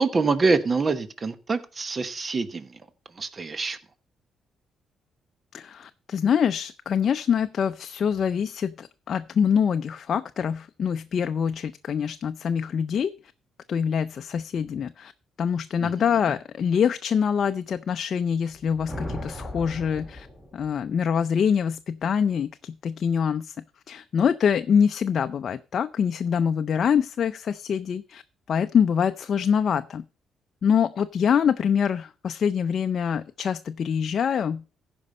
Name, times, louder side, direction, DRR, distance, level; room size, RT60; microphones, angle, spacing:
voice 1, 0.0-2.8 3.2-3.8 15.8-16.2, right 4 dB, 35° right, 13 dB, 1.0 m, -25 dB
voice 2, 5.5-13.1 13.7-15.1 15.4-20.3 20.5-23.6 23.9-28.2 28.5-30.0 30.6-34.7, left 7 dB, 55° left, 9 dB, 0.5 m, -25 dB
sound 1, 18.5-21.0, equal, ahead, 2.7 m, -38 dB
15.0 x 5.2 x 5.3 m, 0.35 s
cardioid pair, 90°, 0 cm